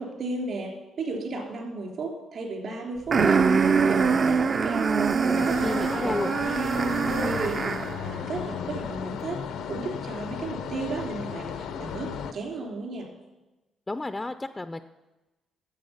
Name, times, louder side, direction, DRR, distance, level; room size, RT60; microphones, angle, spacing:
voice 1, 0.0-4.8 5.2-7.7 8.0-9.4 9.7-13.1, right 3 dB, 60° right, 1 dB, 3.2 m, -34 dB
sound 1, 3.1-8.0, right 5 dB, 45° right, 0.5 m, -23 dB
sound 2, 5.3-12.3, left 7 dB, 85° left, 0.7 m, -35 dB
voice 2, 5.6-6.3 13.9-14.8, left 2 dB, 15° left, 10 dB, 0.4 m, -31 dB
10.5 x 7.4 x 5.6 m, 1.1 s
cardioid pair, 90°, 0 cm